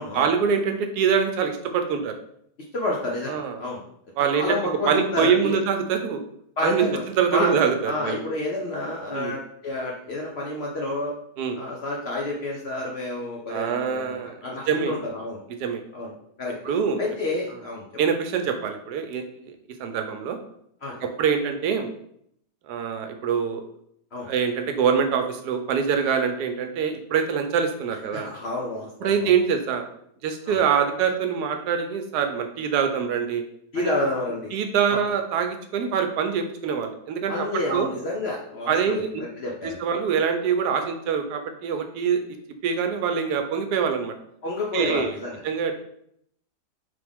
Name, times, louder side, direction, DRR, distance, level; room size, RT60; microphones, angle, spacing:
voice 1, 0.1-2.2 3.3-3.6 4.2-4.6 4.9-6.2 6.6-6.9 7.2-8.2 9.1-9.3 11.4-11.6 13.5-14.3 14.7-15.0 15.6-15.8 16.6-17.0 18.0-19.5 19.8-20.4 21.0-21.9 22.7-23.6 24.2-28.3 29.0-29.8 30.2-33.4 33.8-33.9 34.5-37.9 38.7-39.1 39.6-42.2 42.6-44.1 44.7-45.1 45.4-45.8, right 7 dB, 85° right, 6 dB, 1.2 m, -24 dB
voice 2, 2.7-3.8 4.2-5.6 6.6-7.0 7.3-7.5 7.8-11.1 11.6-15.4 15.9-16.1 16.4-16.6 17.0-17.9 20.8-20.9 24.1-24.3 28.1-29.3 30.4-30.6 33.7-34.5 34.9-35.0 37.3-39.8 44.4-45.4, left 2 dB, 60° left, -2 dB, 0.7 m, -29 dB
3.5 x 3.4 x 3.5 m, 0.69 s
omnidirectional pair, 1.7 m